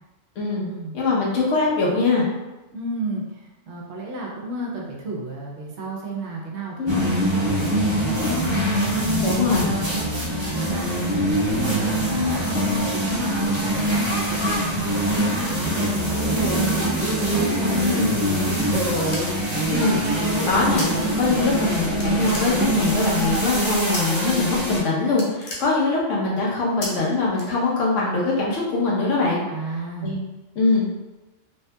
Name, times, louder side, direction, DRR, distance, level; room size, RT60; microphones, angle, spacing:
voice 1, 0.4-0.7 0.9-2.2 6.8-7.0 9.2-9.7 17.9-18.2 19.7-20.0 20.4-29.4 30.0-30.2 30.6-30.9, left 3 dB, 80° left, -4 dB, 1.2 m, -22 dB
voice 2, 2.7-17.0 17.3-18.9 29.5-30.2, right 2 dB, 70° right, -2 dB, 0.9 m, -32 dB
sound 1, 6.9-24.8, equal, 35° right, 0.4 m, -23 dB
sound 2, 18.6-19.6 20.8-20.9 21.2-21.7 22.0-23.0 23.9-24.3 24.7-24.8 25.1-26.2 26.8-26.9 27.3-28.0, left 2 dB, 55° left, 0.9 m, -35 dB
3.3 x 2.7 x 2.2 m, 1.1 s
omnidirectional pair, 1.3 m